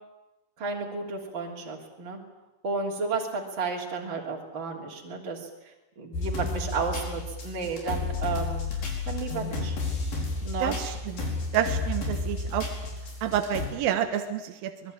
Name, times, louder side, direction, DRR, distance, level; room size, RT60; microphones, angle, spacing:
voice 1, 0.6-2.2 2.6-5.5 6.0-8.7 9.1-9.7 10.4-10.8, right 4 dB, 35° right, -1 dB, 3.7 m, -32 dB
sound 1, 6.1-13.7, left 3 dB, 75° left, 6.7 m, -32 dB
voice 2, 10.6-11.2 11.5-12.7 13.2-14.9, right 10 dB, 75° right, 7 dB, 3.0 m, -29 dB
25.0 x 21.0 x 8.8 m, 1.0 s
omnidirectional pair, 4.2 m